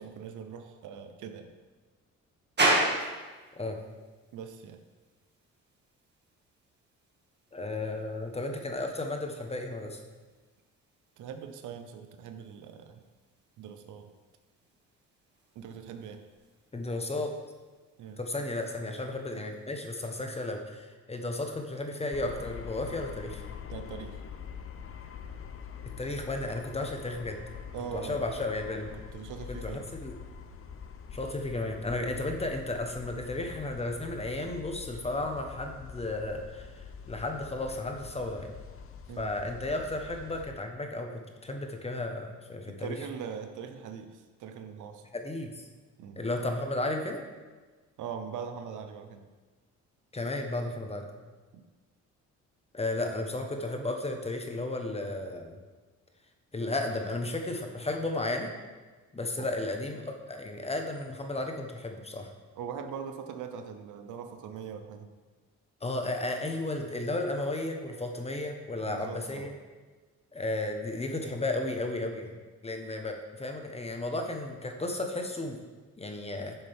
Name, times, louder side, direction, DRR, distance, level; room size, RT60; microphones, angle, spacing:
voice 1, 0.0-1.5 4.3-4.8 11.2-13.0 13.6-14.1 15.5-16.2 18.0-18.2 23.7-24.2 27.7-28.2 29.1-29.9 39.1-39.3 42.7-45.0 46.0-46.2 48.0-49.2 51.5-51.6 59.4-59.5 62.6-65.1 68.9-69.5, right 7 dB, 80° right, 7 dB, 0.9 m, -41 dB
sound 1, 2.6-20.0, right 1 dB, 35° right, 2.0 m, -38 dB
voice 2, 7.5-10.0 16.7-17.3 18.2-23.4 25.8-27.4 27.9-28.9 29.5-30.1 31.1-38.5 39.2-43.0 45.1-45.7 46.2-47.2 50.1-51.1 52.7-55.6 56.5-58.5 59.1-62.3 65.8-69.5 70.3-72.4 72.6-75.6 76.0-76.6, left 2 dB, 20° left, 4 dB, 1.2 m, -34 dB
sound 2, 22.1-40.5, left 7 dB, 45° left, 0.8 m, -45 dB
10.5 x 7.1 x 3.6 m, 1.3 s
cardioid pair, 90°, 30 cm